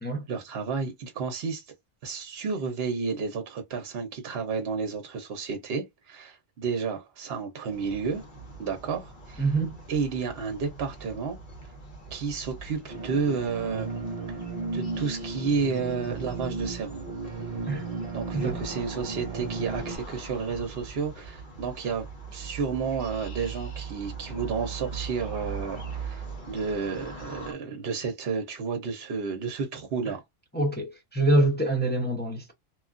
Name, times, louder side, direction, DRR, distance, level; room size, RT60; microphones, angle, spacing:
voice 1, 0.3-1.6 2.0-8.2 8.6-9.4 9.9-11.4 12.1-13.9 14.3-14.4 14.7-17.1 18.1-30.2, right 5 dB, 65° right, 0.9 m, -31 dB
sound 1, 7.7-27.5, right 4 dB, 50° left, 1.1 m, -41 dB
voice 2, 9.4-9.8 17.7-17.9 18.3-18.6 30.5-32.5, right 2 dB, 10° left, 0.6 m, -25 dB
sound 2, 12.9-20.0, right 3 dB, 40° right, 0.7 m, -35 dB
3.0 x 2.3 x 2.4 m
omnidirectional pair, 1.1 m